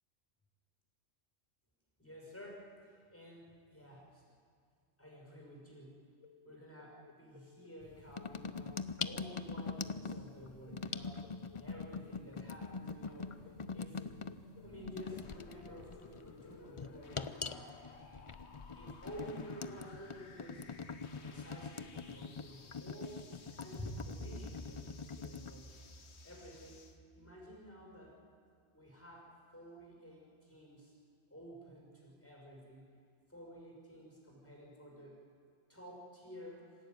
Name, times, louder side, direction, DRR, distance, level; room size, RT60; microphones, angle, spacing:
voice 1, 2.0-4.2 5.0-6.0 6.4-11.2 11.5-13.4 13.7-14.1 14.6-17.7 18.7-20.7 21.1-23.2 23.5-25.7 26.2-26.8 27.1-28.2 28.7-30.9 31.3-32.9 33.3-35.2 35.7-36.8, equal, 10° left, -2 dB, 5.9 m, -51 dB
sound 1, 6.2-16.0, left 7 dB, 80° left, 1.3 m, -60 dB
sound 2, 7.8-25.5, left 5 dB, 40° left, 0.5 m, -44 dB
sound 3, 13.0-27.0, left 4 dB, 60° left, 1.6 m, -58 dB
25.5 x 16.0 x 9.3 m, 2.2 s
omnidirectional pair, 1.3 m